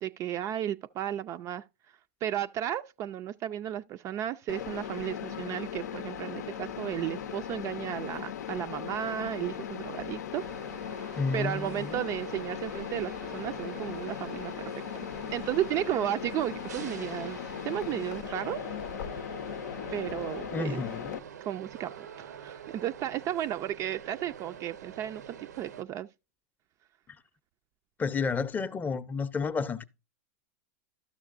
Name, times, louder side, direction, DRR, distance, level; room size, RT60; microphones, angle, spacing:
voice 1, 0.0-1.6 2.2-10.4 11.0-14.5 15.3-17.4 17.6-18.6 19.9-20.9 21.4-26.1, right 12 dB, 35° right, 0.3 m, -34 dB
Mechanisms, 4.5-21.2, left 9 dB, 85° left, 0.6 m, -38 dB
sound 1, 10.3-25.8, right 8 dB, 90° right, 0.8 m, -47 dB
voice 2, 11.1-12.0 20.5-21.2 28.0-29.8, left 5 dB, 20° left, 0.6 m, -31 dB
12.5 x 6.4 x 2.5 m
hypercardioid pair, 110°, 9 cm